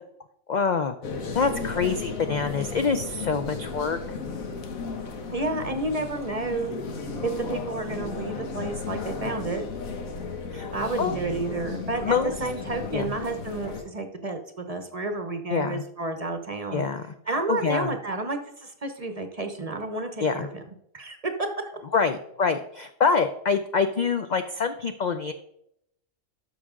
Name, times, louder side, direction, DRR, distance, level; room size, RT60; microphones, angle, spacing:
voice 1, 0.5-0.9 1.3-4.0 10.5-10.7 11.0-11.2 12.0-12.3 12.9-13.1 15.5-15.8 16.7-17.9 20.2-20.5 21.9-25.3, left 5 dB, 70° left, 8 dB, 0.4 m, -26 dB
sound 1, 1.0-13.8, left 4 dB, 90° left, 1.5 m, -34 dB
voice 2, 5.3-6.7 7.2-9.7 10.7-16.8 17.3-20.6 20.9-21.7, right 2 dB, 35° right, 6 dB, 0.7 m, -31 dB
12.5 x 5.6 x 3.7 m, 0.75 s
omnidirectional pair, 1.4 m